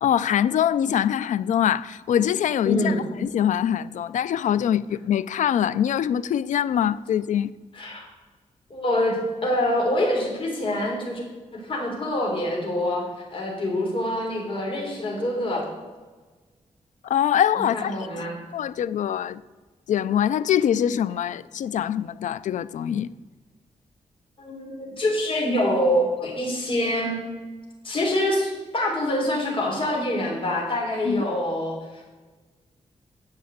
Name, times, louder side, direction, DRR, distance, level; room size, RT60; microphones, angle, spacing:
voice 1, 0.0-7.5 17.0-18.0 18.5-19.4 19.9-23.1 31.1-31.2, left 9 dB, 90° left, 0.4 m, -23 dB
voice 2, 2.6-3.0 7.7-8.1 8.7-9.2 9.4-11.2 11.5-13.0 13.3-15.6 17.6-18.4 24.4-27.2 27.8-32.0, left 1 dB, 45° left, 3.5 m, -25 dB
9.7 x 6.9 x 7.9 m
wide cardioid pair, 120°, 13 cm